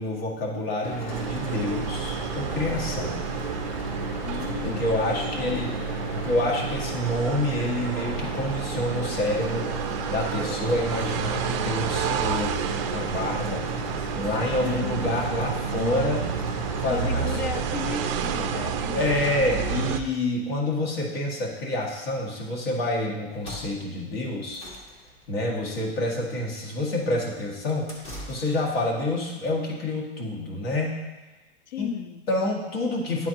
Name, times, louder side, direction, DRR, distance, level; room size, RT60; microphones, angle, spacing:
voice 1, 0.0-3.2 4.6-5.7 6.1-13.7 14.0-16.2 16.8-17.4 18.9-24.6 25.3-28.0 28.3-31.0 31.8-31.9 32.3-33.3, left 1 dB, 65° left, 2.0 m, -28 dB
Mechanical fan, 0.8-18.6, left 1 dB, 80° left, 2.4 m, -35 dB
sound 1, 1.1-20.0, right 8 dB, 30° right, 0.4 m, -30 dB
voice 2, 4.2-5.8 14.6-15.1 15.7-16.2 16.9-19.0 31.7-32.3, left 9 dB, 45° left, 0.4 m, -35 dB
sound 2, 23.3-28.9, equal, 20° left, 0.9 m, -44 dB
11.5 x 4.2 x 3.0 m
supercardioid pair, 155°, 31 cm